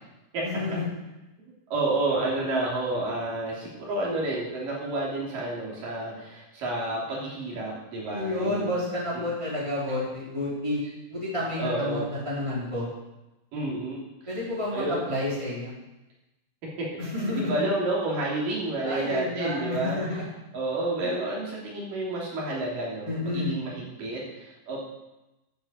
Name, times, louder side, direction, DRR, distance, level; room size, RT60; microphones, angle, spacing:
voice 1, 0.4-0.9 8.0-10.8 11.1-12.9 14.3-15.7 17.0-17.6 18.8-20.2 21.0-21.1 23.0-23.5, left 1 dB, 10° right, -7 dB, 4.3 m, -30 dB
voice 2, 1.5-8.7 9.1-9.3 11.6-12.1 13.5-14.0 14.7-15.0 16.8-16.9 17.3-20.0 20.5-24.8, right 2 dB, 80° right, -4 dB, 4.7 m, -30 dB
11.0 x 8.0 x 7.8 m, 0.98 s
omnidirectional pair, 3.8 m